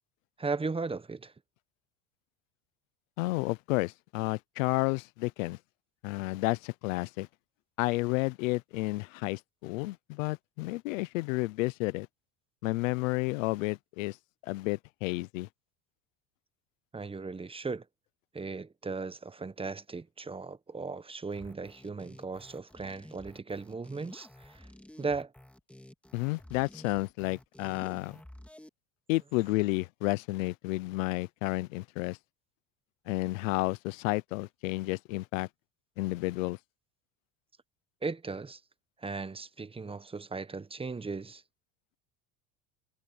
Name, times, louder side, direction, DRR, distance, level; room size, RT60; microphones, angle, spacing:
voice 1, 0.4-1.3 16.9-17.9 18.3-24.7 25.0-25.3 38.0-38.6 39.0-41.4, right 4 dB, 15° right, 1.1 m, -37 dB
voice 2, 3.2-5.6 6.0-7.3 7.8-12.1 12.6-14.2 14.4-15.5 26.1-28.2 29.1-32.2 33.1-35.5 36.0-36.6, left 22 dB, 90° left, 0.9 m, -31 dB
sound 1, 21.3-28.7, left 1 dB, 5° left, 2.4 m, -52 dB
supercardioid pair, 105°, 38 cm